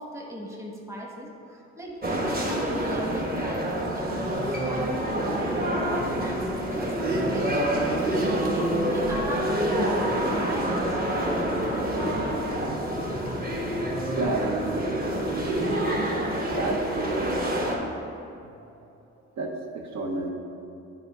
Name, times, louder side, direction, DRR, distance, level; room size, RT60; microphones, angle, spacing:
voice 1, 0.0-11.6, equal, 10° right, -1 dB, 1.2 m, -38 dB
sound 1, 2.0-17.8, right 1 dB, 30° right, 1.2 m, -27 dB
voice 2, 14.1-14.6 15.9-16.2 16.5-17.4 17.8-17.9 19.4-20.3, right 2 dB, 65° right, 2 dB, 0.8 m, -30 dB
8.6 x 3.7 x 4.7 m, 2.7 s
cardioid pair, 90°, 30 cm